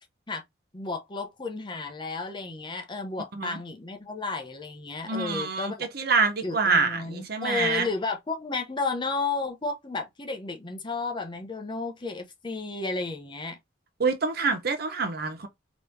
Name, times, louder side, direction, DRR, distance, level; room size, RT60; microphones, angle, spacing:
voice 1, 0.7-5.9 6.4-13.6, left 3 dB, 25° left, 0.7 m, -32 dB
voice 2, 5.1-7.9 14.0-15.5, right 4 dB, 50° right, 0.7 m, -26 dB
3.7 x 3.0 x 2.6 m
head